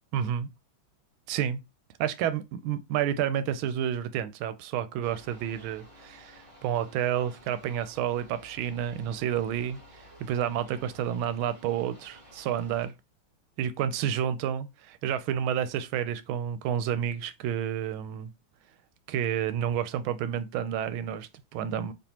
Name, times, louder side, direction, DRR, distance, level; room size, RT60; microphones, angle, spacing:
voice 1, 0.1-0.5 1.3-1.6 2.0-12.9 13.6-18.3 19.1-21.9, right 9 dB, 85° right, 1.4 m, -30 dB
sound 1, 5.0-12.9, equal, 15° right, 1.9 m, -53 dB
4.3 x 3.2 x 2.8 m
omnidirectional pair, 2.2 m